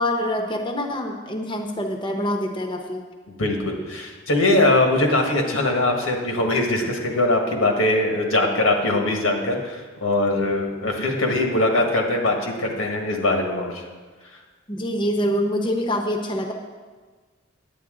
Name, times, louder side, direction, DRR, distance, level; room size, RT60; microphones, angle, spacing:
voice 1, 0.0-3.0 14.7-16.5, equal, 25° left, 3 dB, 0.6 m, -25 dB
voice 2, 3.3-13.8, left 2 dB, 90° left, 2 dB, 1.5 m, -21 dB
9.5 x 9.0 x 3.8 m, 1.4 s
head